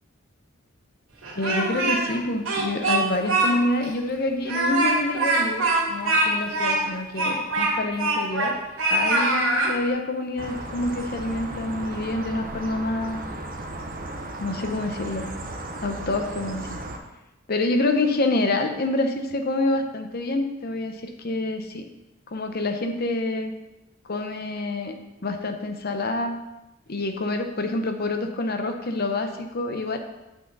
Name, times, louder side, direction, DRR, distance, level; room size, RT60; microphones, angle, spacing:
Speech, 1.2-2.2 2.5-3.5 3.8-3.9 4.4-8.5 8.8-9.7, right 2 dB, 75° right, 2.5 m, -23 dB
voice 1, 1.4-8.6 8.9-13.2 14.4-15.3 15.8-16.8 17.5-21.9 22.3-23.5 24.1-25.0 25.2-26.4 26.9-30.0, left 2 dB, 50° left, 6 dB, 0.8 m, -27 dB
sound 1, 10.4-17.0, right 2 dB, 40° right, 0.8 m, -35 dB
7.7 x 6.4 x 4.0 m, 0.96 s
head